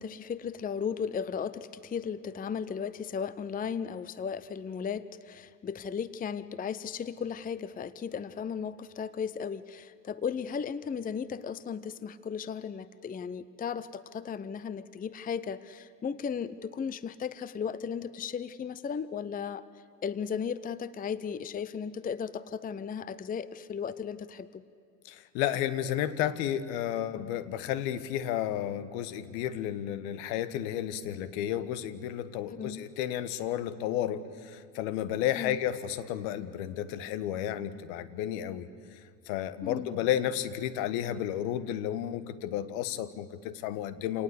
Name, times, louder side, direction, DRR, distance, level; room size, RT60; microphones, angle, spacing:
voice 1, 0.0-19.7 20.0-24.6 32.5-32.8 35.3-35.6 39.6-39.9, left 7 dB, 20° left, 16 dB, 0.7 m, -35 dB
voice 2, 25.0-38.7 39.3-44.2, left 11 dB, 65° left, 14 dB, 1.5 m, -32 dB
27.5 x 18.5 x 8.4 m, 2.5 s
hypercardioid pair, 80°, 48 cm